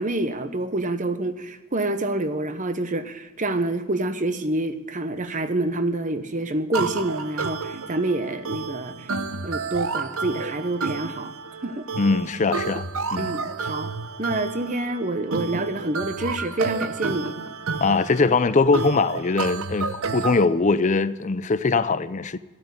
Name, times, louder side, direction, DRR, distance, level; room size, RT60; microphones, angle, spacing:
voice 1, 0.0-9.1 9.4-11.3 11.6-11.9 13.2-13.9 14.2-17.3, right 2 dB, 35° right, 0.9 m, -27 dB
sound 1, 6.7-20.4, right 4 dB, 70° right, 0.9 m, -31 dB
voice 2, 12.0-13.3 17.8-22.4, left 4 dB, 35° left, 0.5 m, -22 dB
14.5 x 8.7 x 8.1 m
head